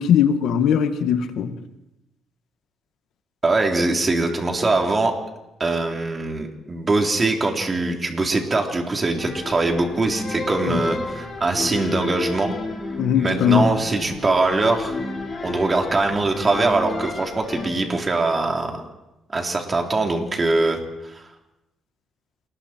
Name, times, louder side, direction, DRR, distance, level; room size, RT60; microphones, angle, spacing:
voice 1, 0.0-1.5 10.6-10.8 13.0-13.7, left 8 dB, 80° left, 8 dB, 1.7 m, -19 dB
voice 2, 3.4-5.1 5.6-12.5 13.2-15.0 15.4-18.8 19.3-21.2, right 3 dB, 30° right, 2 dB, 3.6 m, -22 dB
sound 1, 9.1-17.7, left 3 dB, 30° left, 6.9 m, -32 dB
28.5 x 20.5 x 4.5 m, 0.95 s
cardioid pair, 90°, 0 cm